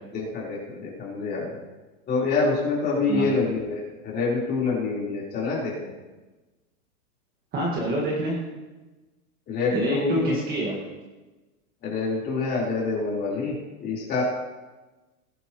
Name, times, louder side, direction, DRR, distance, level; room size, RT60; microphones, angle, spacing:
voice 1, 0.1-1.5 2.1-5.9 9.5-10.3 11.8-13.5 13.8-14.2, left 4 dB, 20° left, -5 dB, 4.0 m, -26 dB
voice 2, 7.5-8.4 9.7-10.8, right 1 dB, 20° right, -2 dB, 1.8 m, -26 dB
20.0 x 11.0 x 3.1 m, 1.2 s
supercardioid pair, 160°, 46 cm